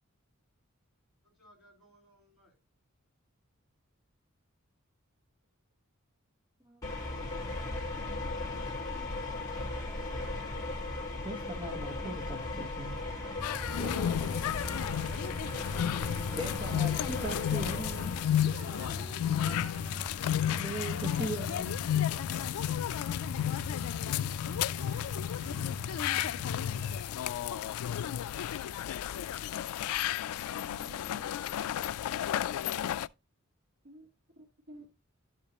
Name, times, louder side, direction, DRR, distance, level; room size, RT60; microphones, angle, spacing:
voice 1, 1.2-2.6, equal, 5° right, 4.0 m, -64 dB
voice 2, 6.6-7.9 8.8-10.3 11.2-13.0 13.8-14.5 16.1-18.5 20.5-21.7, right 1 dB, 20° right, 1.2 m, -41 dB
sound 1, 6.8-18.4, left 2 dB, 15° left, 2.0 m, -37 dB
sound 2, 13.4-33.1, left 10 dB, 90° left, 0.3 m, -33 dB
sound 3, 13.4-27.0, left 2 dB, 60° right, 1.6 m, -42 dB
voice 3, 18.3-20.3 24.0-24.4 30.4-31.3 33.8-34.1 34.4-34.9, right 2 dB, 75° right, 1.5 m, -49 dB
12.0 x 5.0 x 2.9 m
head